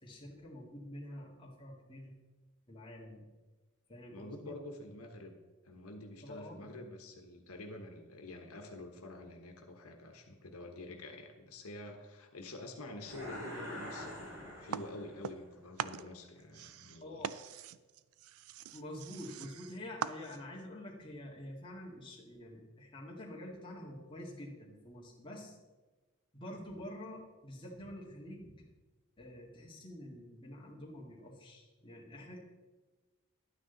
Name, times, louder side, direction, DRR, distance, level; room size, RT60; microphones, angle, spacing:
voice 1, 0.0-2.2 2.7-3.2 3.9-4.6 6.2-6.7 17.0-17.5 18.7-25.6 26.3-28.7 29.2-32.4, left 1 dB, 20° left, -3 dB, 1.9 m, -47 dB
voice 2, 4.1-5.4 5.6-17.2, left 1 dB, 85° left, 4 dB, 1.2 m, -48 dB
sound 1, 13.0-15.3, left 1 dB, 60° right, 4.2 m, -45 dB
sound 2, 14.7-15.5 15.8-20.6, right 8 dB, 80° right, 0.4 m, -42 dB
11.5 x 9.2 x 3.9 m, 1.3 s
head